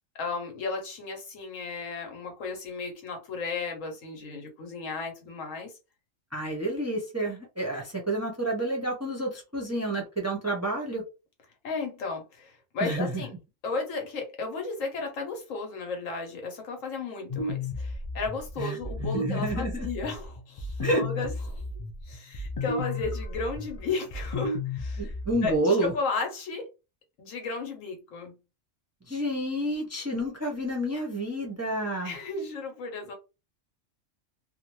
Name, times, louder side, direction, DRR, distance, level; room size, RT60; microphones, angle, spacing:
voice 1, 0.1-5.7 11.6-13.3 13.6-21.7 22.0-25.2 25.4-26.7 27.2-28.4 32.0-33.1, left 4 dB, 90° left, 1.3 m, -34 dB
voice 2, 6.3-11.0 12.8-13.2 18.6-19.9 20.8-21.0 25.0-25.9 29.1-32.2, right 1 dB, 20° right, 0.5 m, -29 dB
sound 1, 17.3-25.6, left 3 dB, 65° left, 0.3 m, -34 dB
2.5 x 2.4 x 3.0 m
omnidirectional pair, 1.3 m